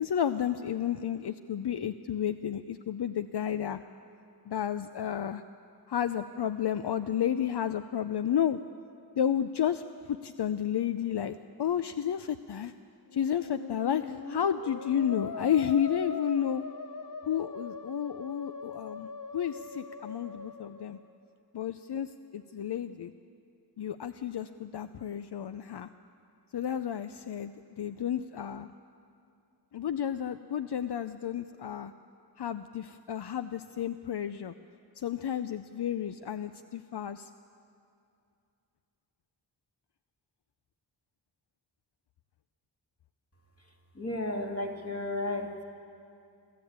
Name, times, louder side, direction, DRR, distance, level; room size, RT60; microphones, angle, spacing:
voice 1, 0.0-3.8 4.5-5.4 5.9-8.6 9.1-9.8 10.1-12.7 13.1-16.6 17.3-21.0 21.5-23.1 23.8-25.9 26.5-28.7 29.7-31.9 32.4-34.5 35.0-37.3, left 9 dB, 75° left, 10 dB, 0.6 m, -31 dB
Musical instrument, 13.0-21.1, left 4 dB, 50° left, 1.2 m, -41 dB
voice 2, 43.6-45.6, left 2 dB, 35° left, 1 dB, 2.4 m, -34 dB
25.0 x 13.5 x 8.7 m, 2.5 s
wide cardioid pair, 80°, 40 cm